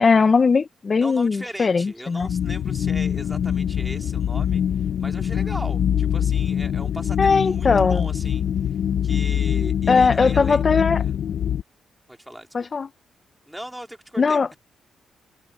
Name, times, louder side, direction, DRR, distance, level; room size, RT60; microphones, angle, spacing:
voice 1, 0.0-2.3 7.2-8.1 9.9-11.0 12.5-12.9 14.2-14.5, left 4 dB, 40° left, 0.8 m, -19 dB
voice 2, 1.0-8.4 9.0-10.6 11.0-11.1 12.1-12.5 13.5-14.6, right 1 dB, 5° right, 3.5 m, -38 dB
sound 1, 2.2-11.6, left 9 dB, 70° left, 0.8 m, -24 dB
cardioid pair, 85°, 0 cm